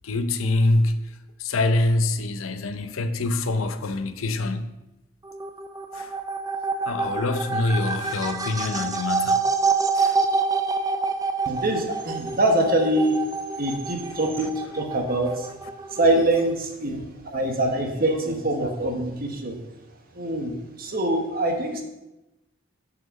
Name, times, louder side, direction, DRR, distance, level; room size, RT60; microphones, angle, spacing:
voice 1, 0.0-1.1 1.4-4.7 6.0-6.1 6.9-9.6 10.0-10.2, left 2 dB, 80° left, 0.7 m, -25 dB
sound 1, 5.2-16.5, right 4 dB, 20° right, 0.4 m, -27 dB
voice 2, 11.4-13.2 13.6-15.5 15.9-19.6 20.1-21.8, right 1 dB, 45° right, 1.3 m, -24 dB
7.9 x 6.0 x 5.3 m
head